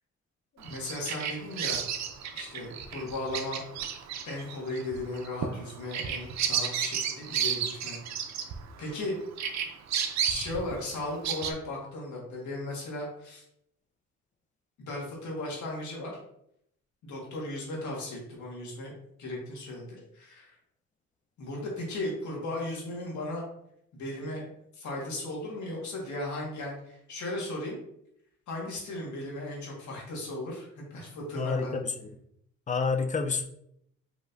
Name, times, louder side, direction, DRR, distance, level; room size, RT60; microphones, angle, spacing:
voice 1, 0.5-1.8 2.3-3.6 4.2-8.0 8.8-9.2 10.2-13.4 14.9-16.2 17.0-18.9 19.2-20.6 21.4-23.5 23.9-27.8 28.5-31.8, left 1 dB, 70° left, -2 dB, 1.6 m, -36 dB
Bird vocalization bird call bird song, 0.6-9.0 9.4-11.5, right 8 dB, 65° right, 0.6 m, -32 dB
voice 2, 31.4-31.9 32.7-33.4, left 4 dB, 25° left, 7 dB, 0.5 m, -28 dB
5.0 x 3.0 x 2.6 m, 0.74 s
cardioid pair, 90°, 30 cm